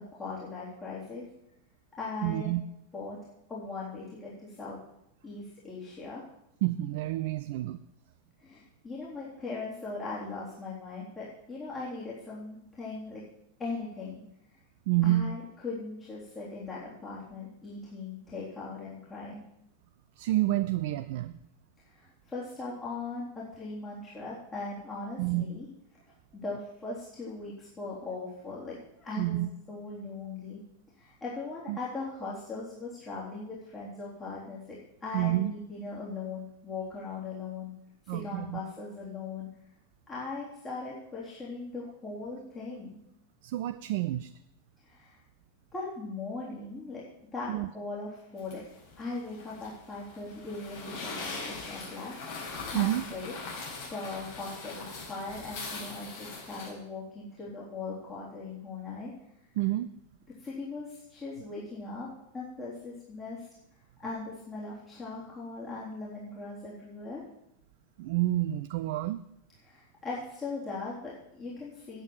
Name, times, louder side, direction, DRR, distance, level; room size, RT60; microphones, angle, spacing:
voice 1, 0.1-1.3 2.0-2.5 2.9-3.2 3.5-4.8 5.2-6.2 8.4-13.2 13.6-14.2 15.0-19.4 21.9-25.7 26.3-30.6 31.0-37.7 38.0-39.5 40.1-43.0 44.8-45.2 45.7-47.0 47.3-48.6 49.0-51.3 51.6-52.1 52.7-53.3 53.9-59.1 60.4-63.5 64.0-67.2 69.6-72.0, left 3 dB, 20° left, -7 dB, 3.7 m, -39 dB
voice 2, 2.2-2.6 6.6-7.8 14.9-15.3 20.2-21.3 25.2-25.5 29.2-29.5 31.7-31.8 35.1-35.5 38.1-38.6 42.7-42.8 43.4-44.3 47.5-47.7 52.7-53.0 59.6-59.9 68.0-69.2, right 15 dB, 50° right, 12 dB, 0.5 m, -28 dB
sound 1, 48.4-56.7, left 3 dB, 50° left, 5.1 m, -41 dB
9.1 x 8.7 x 8.0 m, 0.81 s
figure-of-eight pair, 90°, 0 cm